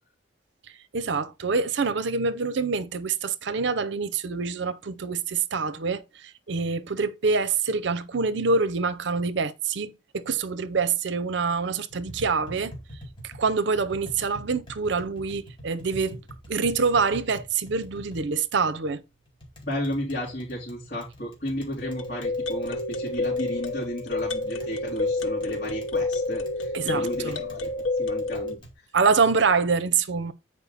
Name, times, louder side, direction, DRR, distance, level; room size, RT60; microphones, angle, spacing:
voice 1, 0.9-12.7 13.2-16.2 16.5-19.0 26.7-27.4 28.9-30.3, right 4 dB, 60° right, 0.6 m, -26 dB
Tap, 11.9-28.7, equal, 25° left, 2.2 m, -46 dB
voice 2, 19.6-27.7 28.0-28.9, equal, 55° left, 3.3 m, -33 dB
sound 1, 21.8-28.6, left 2 dB, 85° left, 0.9 m, -29 dB
8.6 x 4.7 x 4.0 m
head